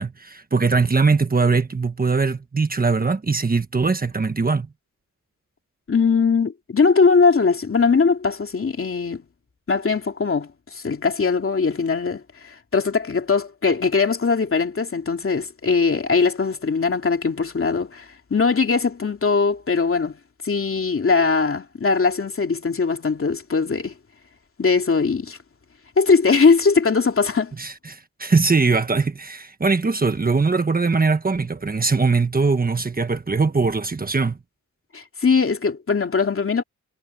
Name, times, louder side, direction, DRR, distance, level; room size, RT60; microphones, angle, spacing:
voice 1, 0.0-4.7 27.6-34.4, right 4 dB, 30° right, 1.3 m, -21 dB
voice 2, 5.9-9.2 9.7-20.2 20.4-23.9 24.6-25.4 26.0-27.5 34.9-36.6, left 4 dB, 45° left, 2.7 m, -20 dB
wide cardioid pair, 110°, 31 cm